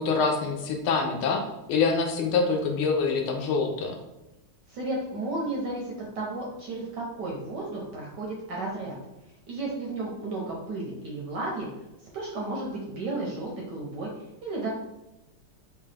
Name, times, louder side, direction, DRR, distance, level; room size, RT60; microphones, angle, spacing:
voice 1, 0.0-1.4 1.7-3.9, left 4 dB, 75° left, 3 dB, 1.4 m, -25 dB
voice 2, 4.7-9.0 9.5-11.7 12.1-14.1 14.4-14.7, right 2 dB, 70° right, -2 dB, 1.1 m, -33 dB
3.9 x 2.3 x 3.2 m, 0.95 s
omnidirectional pair, 2.4 m